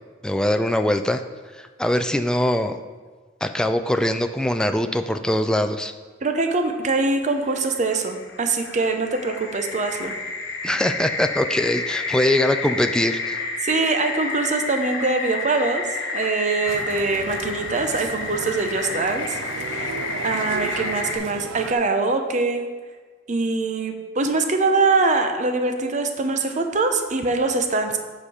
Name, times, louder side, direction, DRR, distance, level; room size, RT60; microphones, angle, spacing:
voice 1, 0.2-1.2 1.5-2.8 3.4-5.9 10.6-13.4, left 1 dB, 5° left, 7 dB, 0.3 m, -22 dB
voice 2, 6.2-10.1 13.6-15.8 16.1-22.6 23.3-28.0, right 3 dB, 40° right, 5 dB, 0.7 m, -23 dB
sound 1, 7.1-21.2, left 3 dB, 80° left, 1.1 m, -30 dB
sound 2, 16.7-21.7, right 5 dB, 85° right, 0.5 m, -35 dB
7.7 x 5.1 x 4.8 m, 1.4 s
head